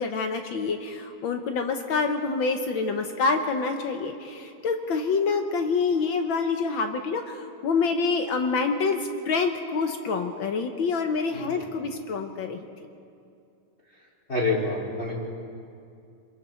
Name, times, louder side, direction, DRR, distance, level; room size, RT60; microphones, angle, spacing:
voice 1, 0.0-9.0 9.2-12.6, left 4 dB, 65° left, 5 dB, 1.2 m, -26 dB
voice 2, 14.3-15.1, left 2 dB, 20° left, -5 dB, 3.9 m, -26 dB
26.5 x 22.0 x 4.4 m, 2.5 s
omnidirectional pair, 3.3 m